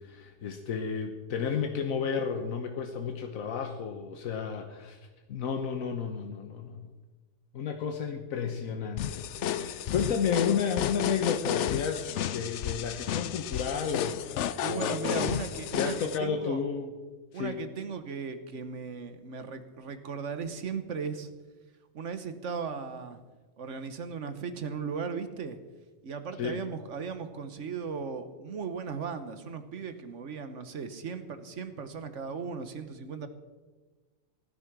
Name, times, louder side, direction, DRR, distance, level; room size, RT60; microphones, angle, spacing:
voice 1, 0.0-5.0 5.3-6.9 7.5-14.2 14.6-15.3 15.5-16.9 17.3-17.6 26.4-26.6, left 6 dB, 85° left, 5 dB, 1.4 m, -32 dB
sound 1, 9.0-16.2, left 10 dB, 65° left, 0.9 m, -32 dB
voice 2, 14.6-16.6 17.3-21.3 21.9-23.2 23.6-25.6 26.0-33.3, right 6 dB, 65° right, 10 dB, 1.4 m, -37 dB
16.5 x 9.9 x 6.1 m, 1.3 s
omnidirectional pair, 1.4 m